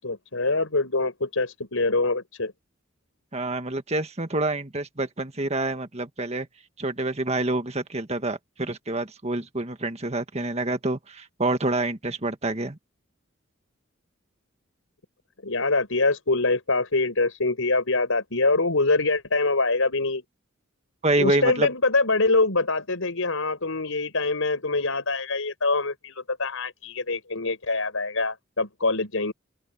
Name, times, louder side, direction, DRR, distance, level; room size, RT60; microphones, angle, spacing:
voice 1, 0.0-2.5 15.4-20.2 21.2-29.3, left 3 dB, 85° left, 5.1 m, -24 dB
voice 2, 3.3-6.5 6.8-12.8 21.0-21.7, right 2 dB, 30° right, 1.7 m, -27 dB
open air
head